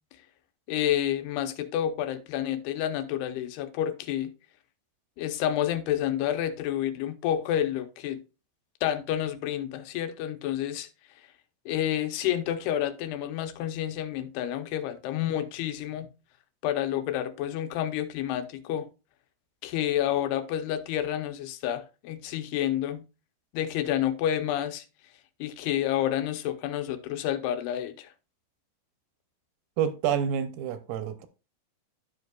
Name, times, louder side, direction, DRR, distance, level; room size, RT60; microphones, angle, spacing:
voice 1, 0.7-4.3 5.2-8.2 8.8-10.9 11.7-16.1 16.6-18.9 19.6-23.0 23.5-24.8 25.4-28.1, left 11 dB, 85° left, 2.8 m, -29 dB
voice 2, 29.8-31.3, right 8 dB, 75° right, 2.2 m, -28 dB
12.5 x 5.3 x 2.3 m
omnidirectional pair, 4.5 m